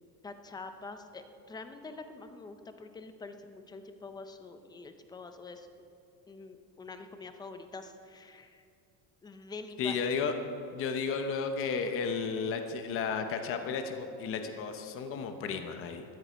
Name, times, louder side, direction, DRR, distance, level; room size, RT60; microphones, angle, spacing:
voice 1, 0.2-5.7 6.3-8.7 9.2-10.0, left 3 dB, 10° left, 8 dB, 0.6 m, -46 dB
voice 2, 9.8-10.3 10.7-16.0, left 5 dB, 35° left, 6 dB, 0.9 m, -33 dB
13.5 x 13.0 x 5.1 m, 2.5 s
cardioid pair, 180°, 37 cm